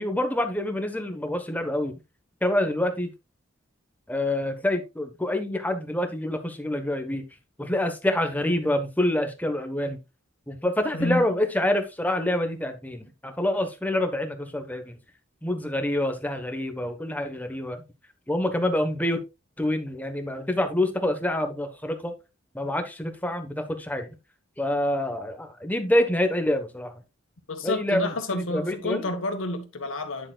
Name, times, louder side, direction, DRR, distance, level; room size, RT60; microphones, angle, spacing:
voice 1, 0.0-1.9 2.4-3.1 4.1-7.2 7.6-10.0 10.5-15.0 15.4-17.8 18.3-19.2 19.6-22.1 22.5-24.1 24.6-26.9 27.6-29.1, left 1 dB, 10° left, 1.2 m, -26 dB
voice 2, 27.5-30.3, left 2 dB, 80° left, 1.7 m, -29 dB
10.0 x 6.9 x 2.4 m
head